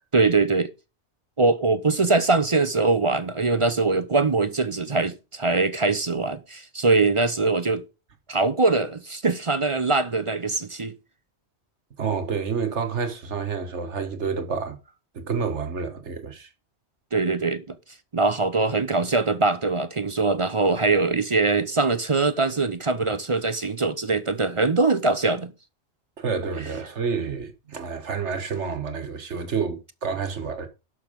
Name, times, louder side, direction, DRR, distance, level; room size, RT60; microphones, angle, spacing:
voice 1, 0.1-0.7 1.4-7.8 8.3-10.9 17.1-17.8 18.1-25.5, right 3 dB, 35° right, 0.6 m, -22 dB
voice 2, 12.0-14.8 15.1-16.5 26.2-30.7, right 5 dB, 85° right, 1.8 m, -29 dB
12.0 x 6.3 x 5.2 m
omnidirectional pair, 1.2 m